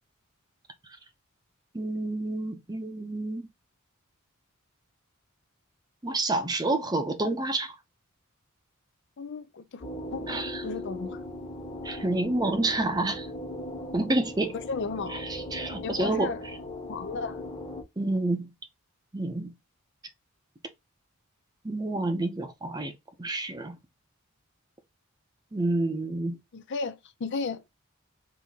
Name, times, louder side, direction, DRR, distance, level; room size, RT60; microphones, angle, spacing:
voice 1, 1.7-3.4 6.0-7.8 10.3-10.6 11.8-13.3 13.9-14.6 15.1-16.3 18.0-18.5 19.1-19.5 21.6-22.9 23.2-23.8 25.5-26.4, right 2 dB, 20° right, 0.6 m, -29 dB
voice 2, 9.2-9.8 10.1-11.2 14.5-15.2 15.8-16.4 16.9-17.4 26.5-27.6, left 4 dB, 55° left, 0.5 m, -34 dB
sound 1, 9.8-17.8, left 1 dB, 30° left, 1.3 m, -38 dB
4.0 x 2.8 x 3.5 m
head